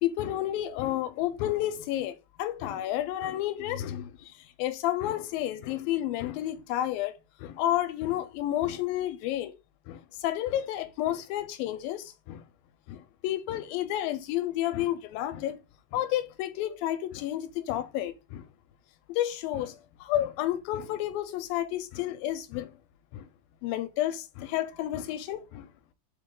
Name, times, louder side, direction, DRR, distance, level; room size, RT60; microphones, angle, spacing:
voice 1, 0.0-9.5 9.9-12.4 12.9-15.6 15.9-18.5 19.1-22.7 23.1-23.3 23.6-25.7, left 13 dB, 85° left, 2.4 m, -31 dB
6.1 x 4.7 x 3.8 m
omnidirectional pair, 4.1 m